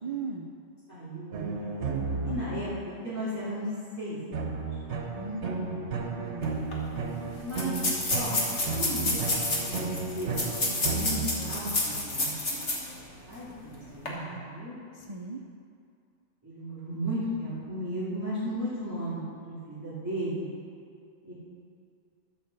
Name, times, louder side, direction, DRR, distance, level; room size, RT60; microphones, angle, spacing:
voice 1, 0.0-0.5 2.0-2.4 5.1-5.9 6.2-6.6 14.9-15.4, right 3 dB, 40° right, 1 dB, 0.4 m, -38 dB
voice 2, 0.9-1.5 2.2-2.7 3.0-3.7 4.0-4.5 7.4-7.8 8.1-8.3 8.8-9.8 10.1-10.4 10.8-12.6 13.3-14.7 16.4-20.5 21.2-21.3, right 1 dB, 15° right, -13 dB, 2.6 m, -35 dB
sound 1, 1.3-3.0 4.3-12.1, right 4 dB, 70° right, 1.3 m, -34 dB
sound 2, 6.4-6.5 6.7-6.8 7.5-12.9 13.3-13.4 13.9-14.1, left 2 dB, 70° left, 2.0 m, -29 dB
13.0 x 4.9 x 6.8 m, 2.4 s
omnidirectional pair, 1.3 m